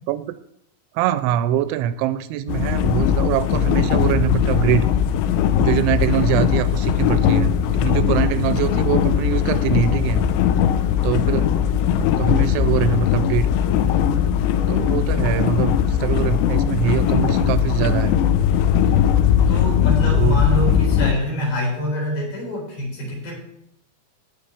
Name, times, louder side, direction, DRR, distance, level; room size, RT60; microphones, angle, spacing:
voice 1, 1.0-4.9 5.6-10.2 11.0-11.5 12.2-13.5 14.7-18.2 20.1-20.4, right 11 dB, 85° right, 13 dB, 2.9 m, -23 dB
sound 1, 2.5-21.1, left 9 dB, 85° left, 3.0 m, -19 dB
voice 2, 19.5-23.4, equal, 60° left, -3 dB, 6.3 m, -26 dB
15.0 x 10.5 x 3.4 m, 0.73 s
omnidirectional pair, 5.4 m